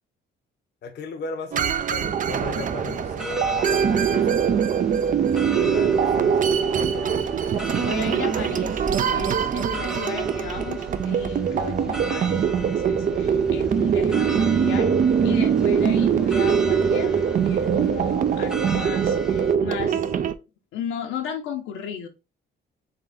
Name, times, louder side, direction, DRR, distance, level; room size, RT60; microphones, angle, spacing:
voice 1, 0.8-4.6 5.5-7.1, left 4 dB, 60° left, 0.8 m, -36 dB
sound 1, 1.5-20.3, right 7 dB, 40° right, 0.4 m, -22 dB
sound 2, 2.3-19.5, right 1 dB, 5° right, 0.7 m, -36 dB
voice 2, 7.8-14.9 15.2-20.1 20.7-22.1, left 7 dB, 90° left, 0.9 m, -35 dB
3.8 x 3.3 x 3.5 m
cardioid pair, 90°, 20 cm